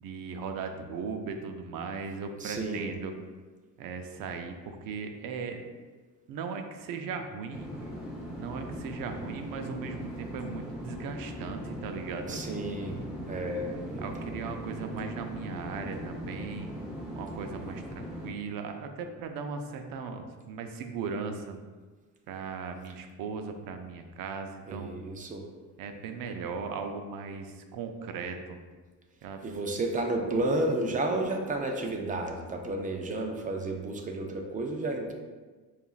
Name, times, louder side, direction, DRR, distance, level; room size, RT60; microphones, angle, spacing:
voice 1, 0.0-3.2 3.8-5.6 6.3-7.9 8.4-12.4 14.0-16.7 17.1-21.6 22.3-25.0 25.8-28.6 29.2-29.4, right 5 dB, 80° right, 6 dB, 0.6 m, -38 dB
voice 2, 2.4-2.9 12.3-13.0 13.3-14.4 24.7-25.5 29.4-35.1, right 2 dB, 25° right, 2 dB, 0.4 m, -32 dB
sound 1, 7.5-18.3, equal, ahead, 0.9 m, -39 dB
6.7 x 2.5 x 2.4 m, 1.4 s
cardioid pair, 155°, 34 cm